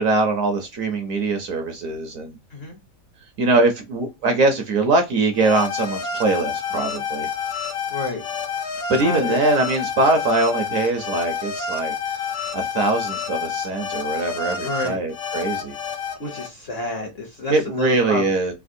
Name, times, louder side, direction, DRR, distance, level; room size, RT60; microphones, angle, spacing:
voice 1, 0.0-2.4 3.4-7.3 8.9-12.2 12.5-15.7 17.5-18.5, right 2 dB, 65° right, 0.9 m, -22 dB
sound 1, 5.3-16.5, left 6 dB, 70° left, 1.1 m, -29 dB
voice 2, 7.9-8.2 9.0-9.4 14.6-15.0 16.2-18.5, left 2 dB, 50° left, 0.7 m, -29 dB
3.4 x 2.3 x 2.5 m
omnidirectional pair, 1.8 m